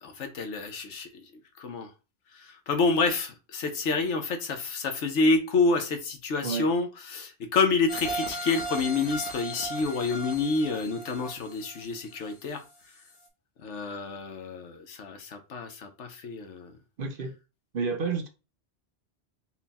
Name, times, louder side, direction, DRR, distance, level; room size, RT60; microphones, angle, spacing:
voice 1, 0.0-1.3 1.6-1.9 2.3-12.6 13.6-16.7, left 3 dB, 90° left, 1.2 m, -28 dB
sound 1, 7.9-12.6 13.1-13.2, right 1 dB, 55° left, 1.2 m, -37 dB
voice 2, 17.0-17.3 17.7-18.3, right 5 dB, 55° right, 0.8 m, -30 dB
4.3 x 2.2 x 4.0 m
omnidirectional pair, 1.2 m